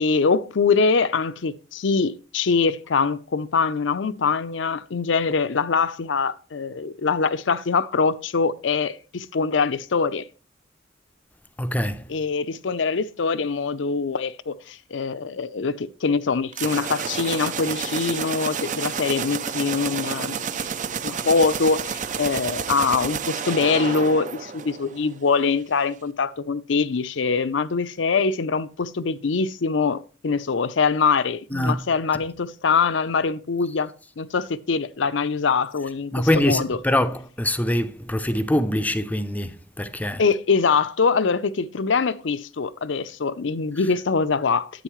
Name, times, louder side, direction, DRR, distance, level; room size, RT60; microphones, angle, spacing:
voice 1, 0.0-10.2 12.1-20.5 21.0-36.8 40.2-44.8, left 5 dB, 70° left, 0.5 m, -23 dB
voice 2, 11.6-12.0 31.5-31.8 36.1-40.2, left 1 dB, 10° left, 0.5 m, -24 dB
sound 1, 16.5-25.2, right 6 dB, 40° right, 0.5 m, -30 dB
10.0 x 8.3 x 3.1 m
head